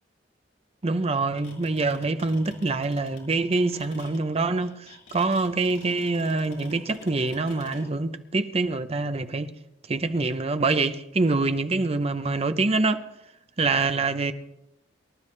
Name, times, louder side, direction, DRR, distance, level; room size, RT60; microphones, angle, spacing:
voice 1, 0.8-9.5 9.9-13.1 13.6-14.3, right 3 dB, 35° right, 0.7 m, -25 dB
sound 1, 1.1-7.8, left 2 dB, 90° left, 5.6 m, -46 dB
24.5 x 12.5 x 3.3 m
head